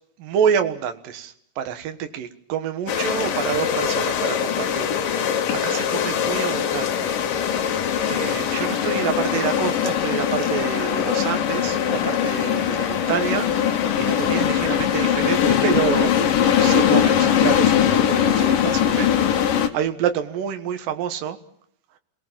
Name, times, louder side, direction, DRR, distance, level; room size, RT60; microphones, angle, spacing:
voice 1, 0.2-7.1 7.7-7.8 8.1-16.1 16.6-21.4, right 8 dB, 65° right, 7 dB, 2.8 m, -28 dB
sound 1, 2.9-19.7, left 9 dB, 65° left, 2.9 m, -21 dB
30.0 x 19.5 x 7.4 m, 0.71 s
omnidirectional pair, 4.7 m